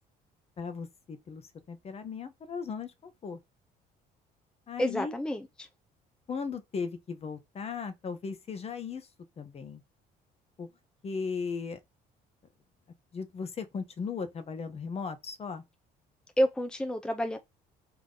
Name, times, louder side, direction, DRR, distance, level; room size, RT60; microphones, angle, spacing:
voice 1, 0.6-1.4 1.7-3.4 4.7-5.1 6.3-9.1 9.4-9.8 10.6-10.7 11.0-11.8 13.1-15.6, left 5 dB, 35° left, 0.9 m, -37 dB
voice 2, 4.8-5.7 16.4-17.4, equal, 5° left, 0.7 m, -29 dB
3.7 x 2.9 x 3.8 m
cardioid pair, 110°, 17 cm